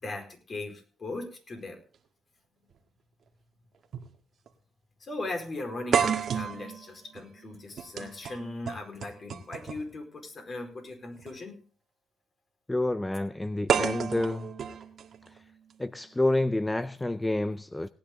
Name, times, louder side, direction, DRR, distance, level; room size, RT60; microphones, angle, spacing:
voice 1, 0.0-1.8 5.0-11.6, left 2 dB, 40° left, 4.7 m, -38 dB
sound 1, 2.7-2.8 3.9-4.1 4.5-4.6 5.9-9.9 11.1-11.3 13.7-15.7, right 7 dB, 55° right, 1.7 m, -31 dB
voice 2, 12.7-14.5 15.8-17.9, left 2 dB, 10° left, 0.5 m, -28 dB
18.0 x 9.9 x 3.8 m
cardioid pair, 90°, 0 cm